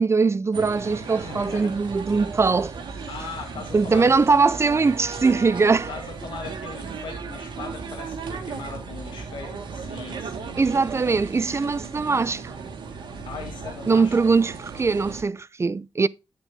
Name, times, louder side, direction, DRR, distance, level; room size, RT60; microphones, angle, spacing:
voice 1, 0.0-2.7 3.7-5.9 10.6-12.5 13.9-16.1, right 4 dB, 35° right, 0.6 m, -21 dB
sound 1, 0.5-15.2, right 5 dB, 75° right, 1.8 m, -36 dB
voice 2, 1.0-1.7 3.1-4.1 5.9-10.6 13.3-14.3, left 5 dB, 85° left, 2.0 m, -39 dB
8.8 x 7.2 x 3.7 m
cardioid pair, 65°, 8 cm